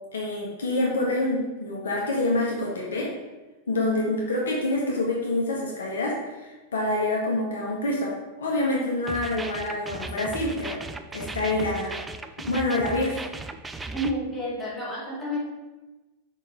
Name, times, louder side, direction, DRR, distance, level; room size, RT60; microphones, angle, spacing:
voice 1, 0.1-3.1 3.7-8.1 8.4-10.8 11.1-11.9 12.4-13.2, left 2 dB, 65° left, -3 dB, 1.5 m, -26 dB
sound 1, 9.1-14.1, right 3 dB, 10° right, 0.4 m, -37 dB
voice 2, 13.9-15.4, equal, 5° left, -6 dB, 2.2 m, -30 dB
6.5 x 3.8 x 5.2 m, 1.1 s
figure-of-eight pair, 90°, 0 cm